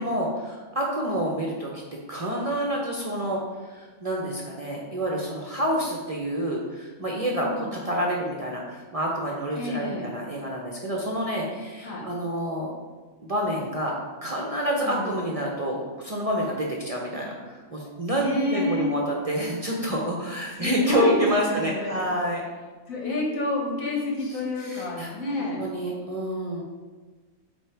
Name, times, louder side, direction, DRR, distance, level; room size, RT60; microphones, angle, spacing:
voice 1, 0.0-1.8 2.1-12.7 13.2-13.9 14.2-22.4 24.6-25.1 25.4-26.6, equal, 35° right, -2 dB, 0.6 m, -28 dB
voice 2, 7.4-7.8 9.6-10.1 11.8-12.1 14.8-15.1 18.1-18.9 20.5-22.1 22.9-25.6, left 2 dB, 85° left, -3 dB, 1.7 m, -29 dB
7.7 x 2.7 x 4.5 m, 1.3 s
omnidirectional pair, 1.4 m